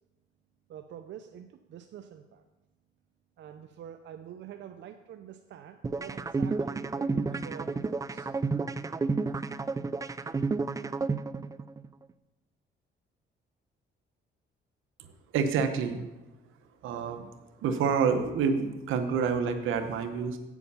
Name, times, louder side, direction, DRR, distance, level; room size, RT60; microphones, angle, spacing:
voice 1, 0.7-2.4 3.4-8.3, right 9 dB, 65° right, 7 dB, 0.6 m, -46 dB
sound 1, 5.8-11.9, right 4 dB, 15° right, 0.3 m, -31 dB
voice 2, 15.0-16.0 16.8-17.3 17.6-20.4, right 6 dB, 85° right, 8 dB, 0.9 m, -28 dB
8.2 x 7.1 x 5.5 m, 1.1 s
cardioid pair, 90°, 20 cm